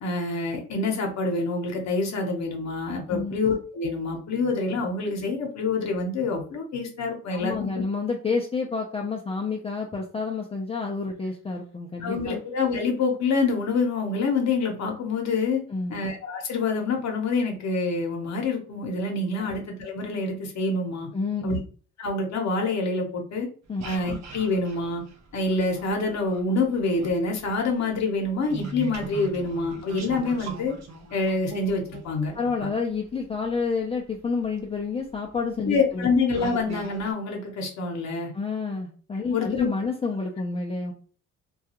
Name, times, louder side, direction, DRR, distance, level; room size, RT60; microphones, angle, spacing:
voice 1, 0.0-7.7 12.0-15.6 15.9-21.1 21.4-21.6 22.0-23.5 23.8-25.0 25.3-30.7 31.1-32.3 32.6-32.7 35.6-38.3 39.3-39.7, left 3 dB, 65° left, 2 dB, 0.8 m, -26 dB
voice 2, 7.3-12.4 15.7-16.0 19.4-19.5 21.1-21.6 23.7-23.8 32.3-36.1 38.3-40.9, left 4 dB, 20° left, -1 dB, 0.4 m, -29 dB
sound 1, 23.6-26.4 26.8-33.5 34.4-34.5 35.1-35.4 35.9-36.0 36.3-37.1, right 4 dB, 60° right, 0.7 m, -40 dB
2.3 x 2.3 x 2.8 m, 0.40 s
cardioid pair, 90°, 30 cm